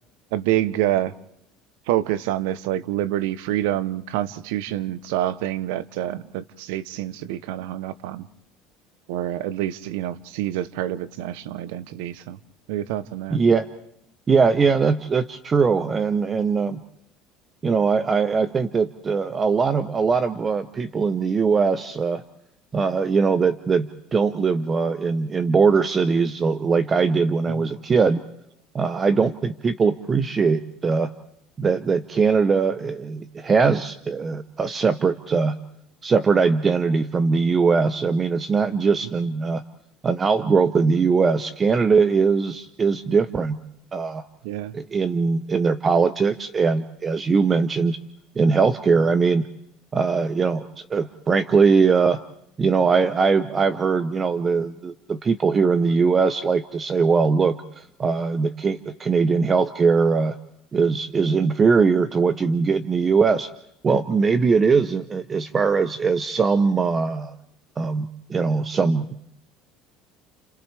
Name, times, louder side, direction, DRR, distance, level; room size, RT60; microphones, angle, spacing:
voice 1, 0.3-1.1 1.9-8.3 9.1-12.4 12.7-13.4 27.5-27.6 44.4-44.7, right 13 dB, 85° right, 16 dB, 0.8 m, -27 dB
voice 2, 13.3-13.7 14.3-16.8 17.6-22.2 22.7-28.2 28.7-31.1 31.6-35.6 36.0-39.6 40.0-43.6 43.9-44.2 44.7-48.0 48.4-49.5 49.9-52.2 52.6-60.4 60.7-63.5 63.8-67.3 67.8-69.1, right 5 dB, 25° right, 12 dB, 0.7 m, -21 dB
30.0 x 29.0 x 3.4 m, 0.74 s
cardioid pair, 125°, 0 cm